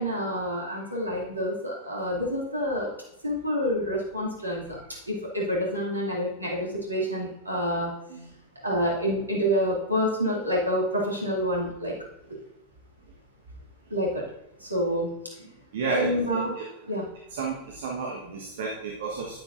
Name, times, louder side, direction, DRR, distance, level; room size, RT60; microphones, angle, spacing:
voice 1, 0.0-2.9 3.2-4.8 5.1-7.9 8.6-11.9 13.9-14.2 14.6-15.1 15.4-15.5 15.9-16.5 16.9-17.1, equal, 80° right, -4 dB, 2.6 m, -27 dB
voice 2, 15.7-16.1 16.5-16.6 17.3-19.4, right 4 dB, 60° right, -1 dB, 1.3 m, -31 dB
9.9 x 9.0 x 2.6 m, 0.86 s
figure-of-eight pair, 90°, 0 cm